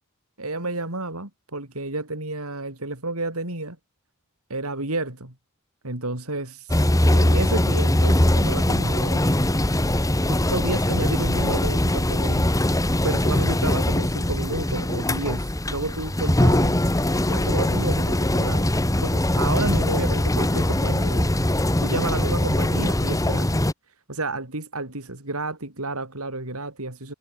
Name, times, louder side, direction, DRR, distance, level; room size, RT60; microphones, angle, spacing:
voice 1, 0.4-3.8 4.5-5.3 5.8-6.7 7.1-9.2 10.2-12.5 13.0-16.8 17.3-18.7 19.0-21.3 21.8-23.6 24.1-27.1, right 2 dB, 80° right, 4.9 m, -31 dB
sound 1, 6.7-23.7, left 1 dB, 15° left, 1.5 m, -21 dB
head